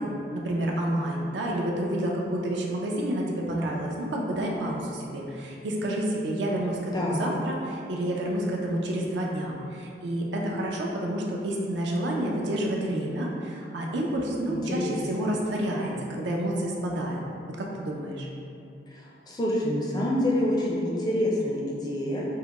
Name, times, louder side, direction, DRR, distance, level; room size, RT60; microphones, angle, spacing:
voice 1, 0.0-17.2 17.6-18.3, right 1 dB, 75° right, -1 dB, 0.5 m, -29 dB
voice 2, 6.9-7.3 14.5-15.3 18.9-22.3, left 1 dB, 20° left, -4 dB, 0.4 m, -27 dB
4.6 x 2.1 x 2.9 m, 2.6 s
head